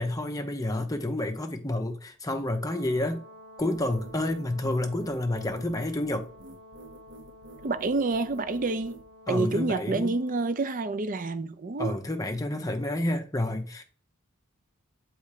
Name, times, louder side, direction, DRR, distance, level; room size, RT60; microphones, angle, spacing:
voice 1, 0.0-3.2 3.6-6.3 9.3-10.2 11.8-13.8, left 1 dB, 15° left, 0.7 m, -29 dB
Brass instrument, 2.6-10.5, left 1 dB, 80° right, 1.3 m, -51 dB
sound 1, 3.6-9.1, right 2 dB, 60° right, 0.9 m, -48 dB
voice 2, 7.6-9.0 9.3-12.0, right 3 dB, 40° right, 0.5 m, -28 dB
7.0 x 3.2 x 4.9 m
head